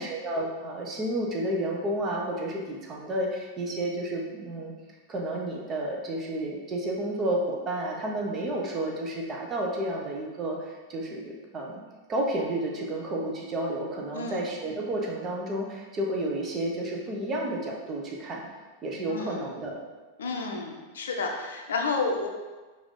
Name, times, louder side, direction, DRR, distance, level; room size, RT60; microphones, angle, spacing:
voice 1, 0.0-4.7 5.1-11.8 12.1-18.5 18.8-19.8, right 1 dB, 25° right, -1 dB, 0.8 m, -31 dB
voice 2, 14.1-14.5 19.1-19.5 20.2-22.3, left 3 dB, 65° left, 1 dB, 0.6 m, -31 dB
4.8 x 2.6 x 3.6 m, 1.3 s
figure-of-eight pair, 90°, 0 cm